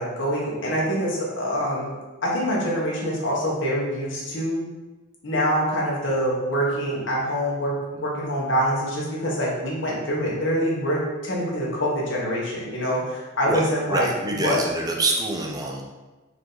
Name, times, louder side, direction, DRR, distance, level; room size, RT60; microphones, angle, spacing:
voice 1, 0.0-1.9 2.2-4.6 5.2-14.6, equal, 60° left, -4 dB, 1.0 m, -25 dB
voice 2, 13.5-15.8, right 2 dB, 20° right, 0 dB, 0.4 m, -26 dB
4.8 x 2.6 x 3.8 m, 1.2 s
head